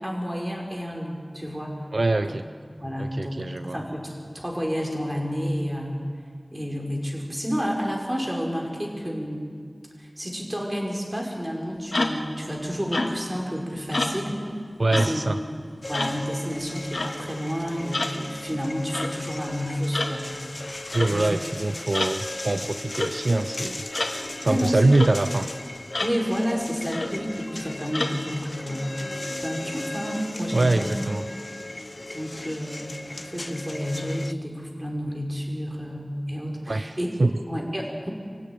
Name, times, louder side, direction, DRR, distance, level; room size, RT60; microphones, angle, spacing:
voice 1, 0.0-1.7 2.3-2.4 2.8-6.0 6.5-9.5 10.0-14.4 14.9-15.2 15.6-20.4 20.9-21.4 24.4-24.8 26.0-29.0 29.4-30.9 31.3-31.4 32.1-37.1 37.5-38.1, equal, 25° right, 0 dB, 5.6 m, -30 dB
voice 2, 1.9-2.4 3.0-3.8 14.8-15.4 20.9-23.8 24.4-25.5 30.5-31.2 36.7-37.3, right 2 dB, 75° right, 10 dB, 0.6 m, -23 dB
sound 1, 11.9-12.3 12.9-13.3 13.9-14.2 14.9-15.2 15.9-16.2 16.9-17.2 17.9-18.2 18.9-19.1 19.9-20.2 20.9-21.1 21.9-22.2 22.9-23.2 23.9-24.2 24.9-25.1 25.9-26.2 26.9-27.2 27.9-28.1, left 2 dB, 90° left, 1.8 m, -28 dB
sound 2, 15.8-34.3, left 1 dB, 50° left, 0.6 m, -37 dB
25.0 x 16.5 x 9.7 m, 2.1 s
wide cardioid pair, 50°, 0 cm